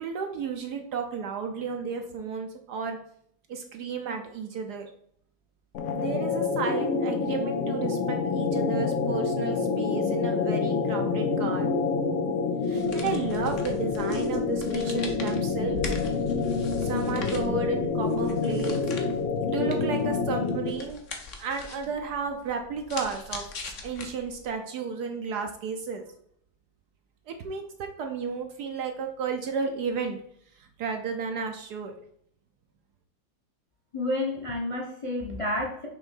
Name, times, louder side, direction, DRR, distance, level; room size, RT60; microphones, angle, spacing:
voice 1, 0.0-3.0 3.5-4.9 5.9-11.7 12.6-15.8 16.8-18.8 19.5-21.0 21.4-26.0 27.3-30.2 30.6-31.9, right 5 dB, 65° right, 4 dB, 1.1 m, -33 dB
sound 1, 5.7-20.9, left 4 dB, 70° left, 0.7 m, -27 dB
sound 2, 12.6-24.5, left 4 dB, 50° left, 1.0 m, -42 dB
voice 2, 33.9-35.9, left 1 dB, 25° left, 0 dB, 0.7 m, -30 dB
6.3 x 3.1 x 5.2 m, 0.66 s
omnidirectional pair, 2.1 m